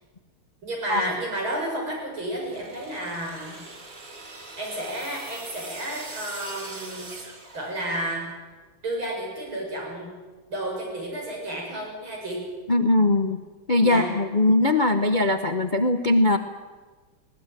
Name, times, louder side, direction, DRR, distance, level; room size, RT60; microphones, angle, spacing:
voice 1, 0.6-3.6 4.6-7.1 7.5-8.3 8.8-10.1 10.5-12.4 13.8-14.1, right 1 dB, 75° right, -1 dB, 8.0 m, -31 dB
sound 1, 2.3-8.2, right 3 dB, 40° right, 2.9 m, -42 dB
voice 2, 12.7-13.4 13.7-16.4, left 2 dB, 35° left, 6 dB, 0.7 m, -20 dB
20.5 x 18.5 x 9.2 m, 1.3 s
omnidirectional pair, 2.3 m